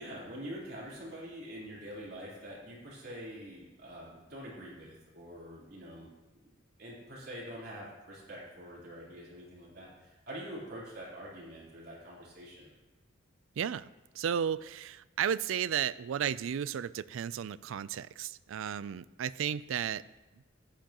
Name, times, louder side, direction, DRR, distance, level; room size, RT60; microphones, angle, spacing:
voice 1, 0.0-6.1 6.4-6.5 6.8-12.7, equal, 55° right, -6 dB, 3.6 m, -45 dB
voice 2, 13.6-13.9 14.1-20.0, right 8 dB, 80° right, 18 dB, 0.3 m, -33 dB
15.0 x 10.5 x 3.0 m, 1.1 s
head